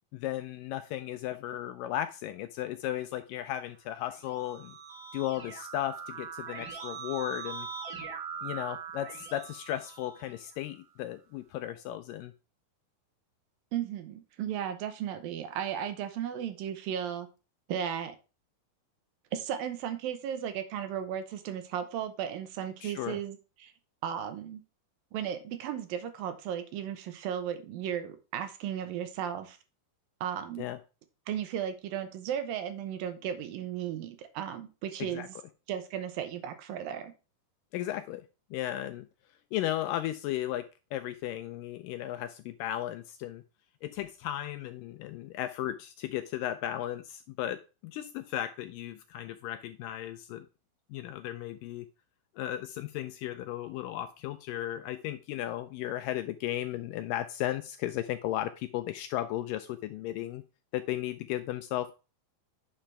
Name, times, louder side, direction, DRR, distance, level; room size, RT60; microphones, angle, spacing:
voice 1, 0.1-4.8 5.1-7.7 8.4-12.3 22.8-23.2 30.6-30.8 35.0-35.3 37.7-38.2 38.5-39.1 39.5-43.4 43.8-50.5 50.9-51.9 52.4-60.4 60.7-61.9, left 13 dB, 85° left, 9 dB, 2.0 m, -35 dB
Keyboard (musical), 4.0-10.6, right 6 dB, 35° right, 2.3 m, -42 dB
voice 2, 13.7-17.3 17.7-18.2 19.3-23.7 24.0-24.6 25.1-29.6 30.2-30.7 31.3-35.3 35.7-37.1, right 9 dB, 75° right, 9 dB, 2.6 m, -35 dB
10.0 x 5.7 x 3.3 m, 0.32 s
omnidirectional pair, 4.3 m